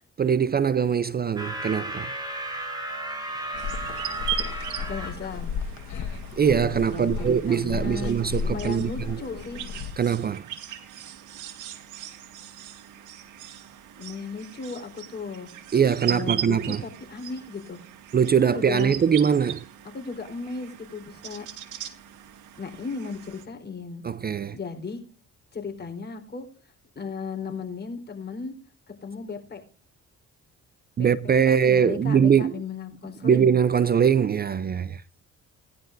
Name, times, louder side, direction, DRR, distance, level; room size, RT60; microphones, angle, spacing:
voice 1, 0.2-2.1 6.4-9.2 10.0-10.5 15.7-16.8 18.1-19.6 24.0-24.6 31.0-32.5 33.2-35.0, right 7 dB, 30° right, 0.5 m, -22 dB
sound 1, 1.4-5.1, right 1 dB, 15° right, 6.2 m, -34 dB
sound 2, 3.5-9.9, left 5 dB, 70° left, 1.5 m, -34 dB
sound 3, 3.6-23.5, right 11 dB, 80° right, 1.9 m, -39 dB
voice 2, 4.8-5.5 6.9-8.1 8.4-9.6 14.0-15.5 16.1-17.8 18.4-18.9 19.9-21.5 22.6-24.0 24.5-25.0 25.5-26.5 27.0-28.5 29.0-29.6 31.0-33.5, left 4 dB, 35° left, 4.1 m, -36 dB
19.0 x 11.0 x 2.6 m
cardioid pair, 90°, 30 cm